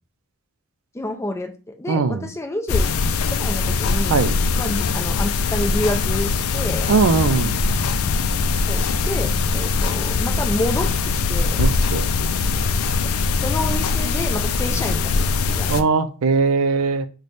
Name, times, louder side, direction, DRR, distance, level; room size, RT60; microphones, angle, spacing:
voice 1, 0.9-4.2 4.6-6.9 8.7-10.9 11.3-11.6 13.0-13.1 13.4-15.7, left 1 dB, 15° left, 0.4 m, -28 dB
voice 2, 1.9-2.3 4.1-4.3 6.9-7.6 11.6-12.4 15.7-17.1, right 4 dB, 75° right, 0.4 m, -20 dB
sound 1, 2.7-15.8, left 4 dB, 85° left, 0.4 m, -21 dB
3.1 x 2.2 x 4.0 m
head